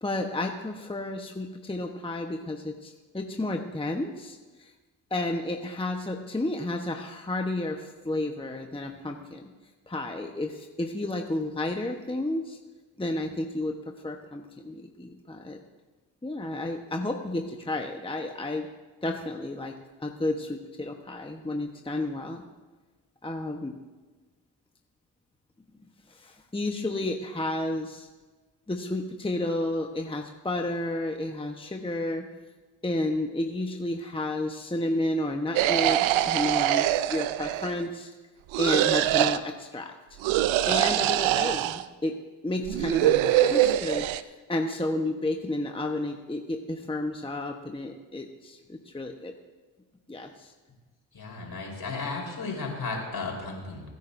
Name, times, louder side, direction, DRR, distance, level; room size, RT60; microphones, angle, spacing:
voice 1, 0.0-4.7 5.1-9.5 9.9-12.6 13.0-15.6 16.2-18.7 19.0-19.7 20.0-22.4 23.2-23.7 26.1-28.1 28.7-32.3 32.8-38.1 38.6-39.9 40.7-42.2 42.4-49.3 50.1-50.5, left 2 dB, 10° left, 3 dB, 1.1 m, -31 dB
sound 1, 35.6-37.8 38.5-39.4 40.2-41.9 42.7-44.2, right 13 dB, 80° right, 0.6 m, -24 dB
voice 2, 51.1-53.8, left 3 dB, 50° left, -1 dB, 4.1 m, -34 dB
23.0 x 9.3 x 2.7 m, 1.3 s
supercardioid pair, 45°, 46 cm